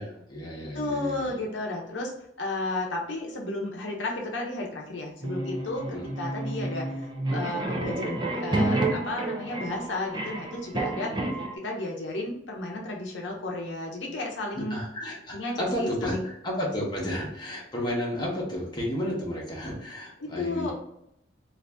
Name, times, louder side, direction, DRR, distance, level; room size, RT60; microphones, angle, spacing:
voice 1, 0.0-1.4 5.9-6.1 14.5-20.7, equal, 25° left, -4 dB, 0.9 m, -32 dB
voice 2, 0.7-2.1 2.4-11.1 11.5-14.8 15.3-16.2 20.2-20.7, left 2 dB, 85° left, 0 dB, 0.7 m, -33 dB
sound 1, 5.2-11.6, right 2 dB, 25° right, 0.4 m, -30 dB
2.6 x 2.6 x 3.4 m, 0.77 s
head